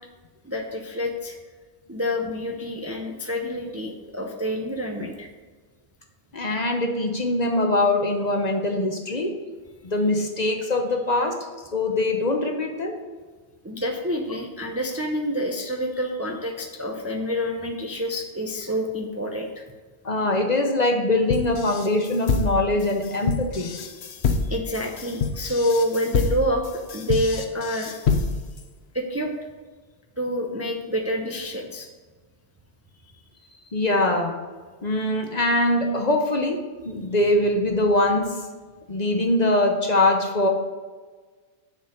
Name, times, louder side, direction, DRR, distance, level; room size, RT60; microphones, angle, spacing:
voice 1, 0.4-1.4 1.9-5.3 13.6-19.6 24.1-27.9 28.9-29.3 30.2-31.9, equal, 15° right, 2 dB, 0.6 m, -28 dB
voice 2, 6.3-9.3 9.8-11.3 11.7-13.0 20.0-23.7 33.7-34.4 34.8-38.3 38.9-40.5, left 2 dB, 40° left, 3 dB, 0.8 m, -22 dB
sound 1, 21.3-28.6, left 5 dB, 70° left, 1.0 m, -26 dB
7.0 x 5.0 x 6.4 m, 1.4 s
omnidirectional pair, 1.1 m